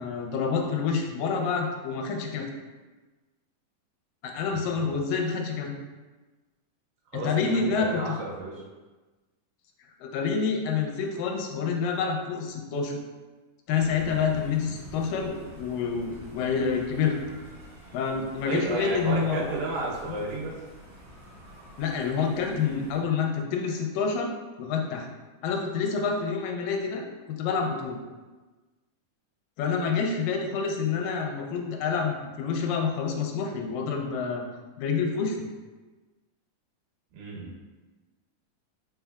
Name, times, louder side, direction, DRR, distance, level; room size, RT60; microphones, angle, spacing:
voice 1, 0.0-2.5 4.2-5.7 7.1-8.2 10.0-13.0 13.7-17.2 17.9-19.6 20.1-20.2 21.8-25.1 25.4-28.0 29.6-34.5 34.8-35.5, left 5 dB, 90° left, 2 dB, 2.3 m, -28 dB
voice 2, 4.5-4.9 7.1-8.5 18.5-20.5 37.1-37.5, right 2 dB, 85° right, -4 dB, 2.7 m, -32 dB
sound 1, 13.8-23.0, equal, 50° right, 1.5 m, -47 dB
5.3 x 3.8 x 2.3 m, 1.2 s
omnidirectional pair, 3.9 m